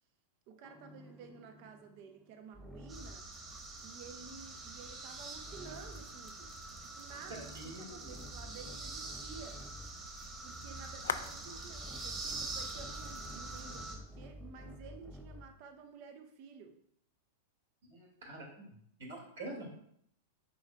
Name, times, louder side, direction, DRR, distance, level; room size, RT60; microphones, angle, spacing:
voice 1, 0.5-3.3 3.8-6.5 6.8-9.6 10.4-16.8, right 5 dB, 45° right, 6 dB, 0.9 m, -52 dB
sound 1, 0.6-3.4 5.4-6.2 7.1-10.1 11.7-15.6, left 1 dB, 10° left, 0.5 m, -51 dB
sound 2, 2.9-14.0, right 3 dB, 25° right, 1.7 m, -45 dB
sound 3, 4.4-14.4, left 7 dB, 70° left, 0.4 m, -49 dB
voice 2, 7.5-8.1 10.7-10.8 17.8-19.7, right 1 dB, 65° right, -2 dB, 2.5 m, -47 dB
9.3 x 4.5 x 2.5 m, 0.68 s
figure-of-eight pair, 95°, 0 cm